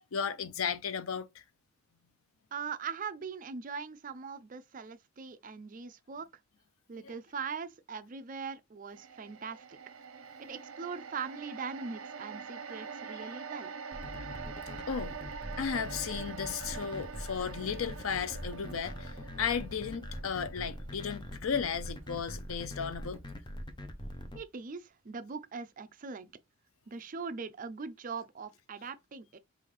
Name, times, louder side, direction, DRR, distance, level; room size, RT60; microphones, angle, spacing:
voice 1, 0.1-1.4 7.0-7.1 14.9-15.2 15.6-23.2, left 6 dB, 85° left, 0.6 m, -35 dB
voice 2, 2.5-6.3 6.9-9.8 10.4-13.7 24.3-26.3 26.9-29.4, right 5 dB, 40° right, 0.5 m, -41 dB
sound 1, 8.9-23.3 23.6-23.8, right 5 dB, 80° right, 0.7 m, -45 dB
sound 2, 13.9-24.4, left 1 dB, 20° left, 0.7 m, -42 dB
5.5 x 2.5 x 3.1 m
head